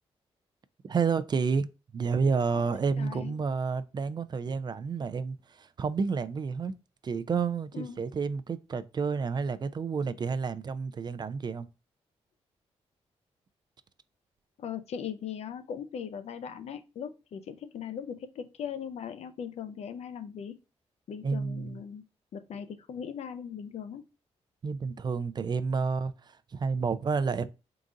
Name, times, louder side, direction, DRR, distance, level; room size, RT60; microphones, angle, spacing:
voice 1, 0.8-6.7 7.0-11.7 21.2-21.8 24.6-27.5, right 5 dB, 40° right, 0.4 m, -30 dB
voice 2, 2.5-3.3 7.7-8.0 14.6-20.6 21.1-22.0 22.3-24.0, left 8 dB, 70° left, 0.5 m, -39 dB
3.9 x 2.4 x 3.7 m
cardioid pair, 65°, 11 cm